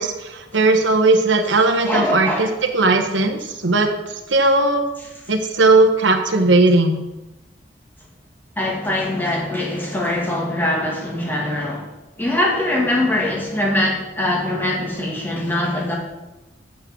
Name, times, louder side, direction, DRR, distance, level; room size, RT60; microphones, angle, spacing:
voice 1, 0.0-2.5 2.7-4.8 5.3-7.0, right 2 dB, 90° right, 4 dB, 1.1 m, -17 dB
voice 2, 1.9-2.5 5.0-5.1 8.6-15.9, left 1 dB, 10° left, -3 dB, 2.2 m, -22 dB
7.6 x 6.1 x 7.4 m, 1.0 s
head